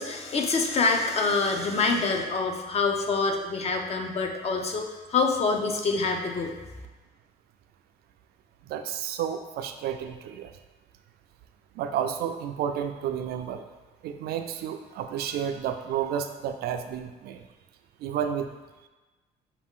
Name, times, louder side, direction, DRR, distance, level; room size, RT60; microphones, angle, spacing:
voice 1, 0.0-6.6, left 4 dB, 40° left, 3 dB, 0.6 m, -26 dB
voice 2, 8.6-10.5 11.7-13.6 14.0-17.4 18.0-18.5, right 9 dB, 70° right, 7 dB, 0.4 m, -31 dB
5.9 x 2.4 x 3.6 m, 1.2 s
cardioid pair, 110°, 17 cm